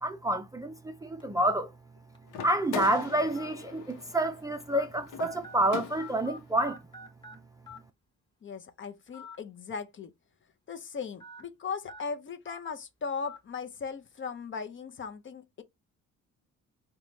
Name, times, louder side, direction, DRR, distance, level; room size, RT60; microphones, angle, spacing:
voice 1, 0.0-1.7 2.4-6.8, right 1 dB, 10° right, 0.4 m, -28 dB
sound 1, 1.2-1.4 2.1-2.2 3.4-3.5 4.2-4.3 4.7-4.9 5.2-6.4 6.6-7.4 7.7-7.8 9.1-9.4 9.7-9.8 11.2-11.4 11.9-12.0 12.5-12.6 13.3-13.4, left 2 dB, 15° left, 1.0 m, -45 dB
sound 2, 2.3-6.4, left 6 dB, 90° left, 0.8 m, -41 dB
voice 2, 8.4-10.1 10.7-15.6, left 5 dB, 40° left, 0.6 m, -38 dB
3.8 x 2.2 x 3.1 m
cardioid pair, 90°, 30 cm